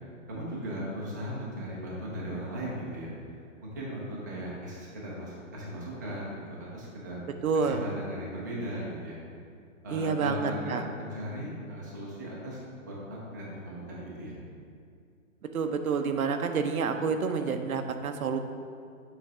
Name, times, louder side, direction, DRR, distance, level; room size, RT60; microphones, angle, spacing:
voice 1, 0.3-3.1 3.6-7.2 7.5-9.2 9.8-14.4, equal, 15° right, -6 dB, 0.4 m, -37 dB
voice 2, 7.4-7.8 9.9-10.8 15.5-18.4, right 5 dB, 85° right, 7 dB, 0.7 m, -28 dB
6.9 x 3.2 x 4.8 m, 2.3 s
hypercardioid pair, 150°, 41 cm